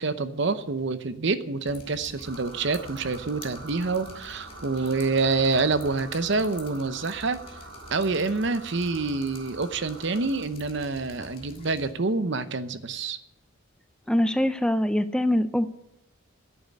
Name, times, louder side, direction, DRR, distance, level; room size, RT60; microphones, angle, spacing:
voice 1, 0.0-7.4 7.9-13.2, right 3 dB, 55° right, 12 dB, 0.8 m, -27 dB
Drip, 1.7-11.9, left 2 dB, 25° left, 1.7 m, -47 dB
sound 1, 2.2-10.5, right 2 dB, 80° right, 1.7 m, -45 dB
voice 2, 14.1-15.7, left 1 dB, 5° left, 11 dB, 0.4 m, -23 dB
10.5 x 8.8 x 8.2 m, 0.83 s
head